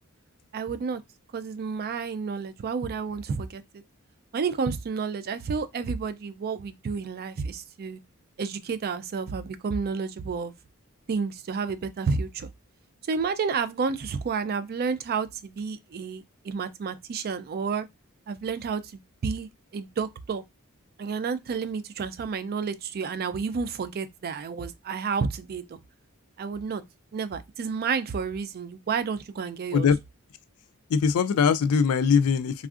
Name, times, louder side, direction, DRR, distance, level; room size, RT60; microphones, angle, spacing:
voice 1, 0.5-1.0 1.3-3.6 4.3-8.0 8.4-10.5 11.1-12.5 13.1-17.9 18.3-18.8 19.2-20.4 21.0-25.8 26.4-26.8 27.1-29.9, right 5 dB, 45° right, 0.4 m, -30 dB
voice 2, 30.9-32.7, left 6 dB, 75° left, 0.3 m, -21 dB
3.4 x 2.4 x 2.3 m
head